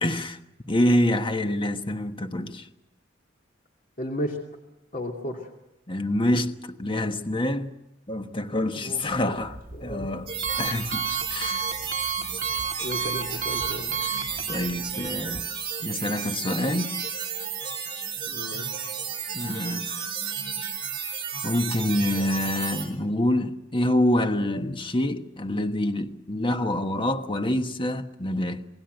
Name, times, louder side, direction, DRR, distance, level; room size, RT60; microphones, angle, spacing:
voice 1, 0.0-0.4 0.7-2.7 5.9-7.7 8.1-10.3 10.6-11.7 14.0-15.5 15.8-16.9 18.6-18.7 19.3-20.1 21.4-28.7, left 1 dB, 25° left, 1.2 m, -26 dB
voice 2, 4.0-4.4 4.9-5.4 8.8-9.4 9.7-10.1 12.8-14.0 18.3-18.7, equal, 45° left, 2.7 m, -34 dB
Alarm, 9.0-15.4, right 6 dB, 45° right, 2.2 m, -33 dB
sound 1, 10.3-22.9, right 7 dB, 25° right, 6.7 m, -33 dB
28.0 x 19.0 x 8.0 m
head